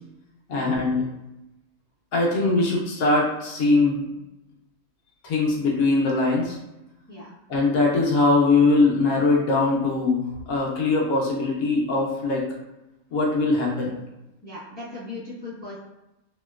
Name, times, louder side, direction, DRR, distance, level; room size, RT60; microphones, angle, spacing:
voice 1, 0.5-1.0 2.1-4.1 5.2-6.6 7.5-12.5 13.1-13.9, left 3 dB, 75° left, -3 dB, 1.1 m, -21 dB
voice 2, 14.4-15.8, left 2 dB, 10° left, -10 dB, 0.8 m, -38 dB
2.9 x 2.9 x 2.3 m, 0.92 s
omnidirectional pair, 1.5 m